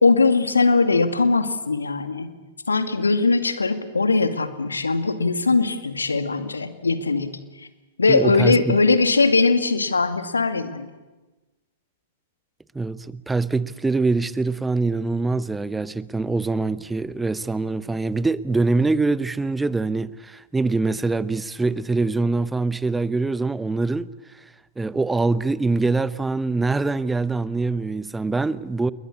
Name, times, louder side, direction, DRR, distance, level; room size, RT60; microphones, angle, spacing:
voice 1, 0.0-2.3 2.7-7.4 8.0-10.9, left 3 dB, 80° left, 2.2 m, -20 dB
voice 2, 8.1-8.8 12.7-24.1 24.8-28.9, right 3 dB, 10° right, 0.9 m, -24 dB
28.5 x 21.5 x 8.6 m
figure-of-eight pair, 100°, 0 cm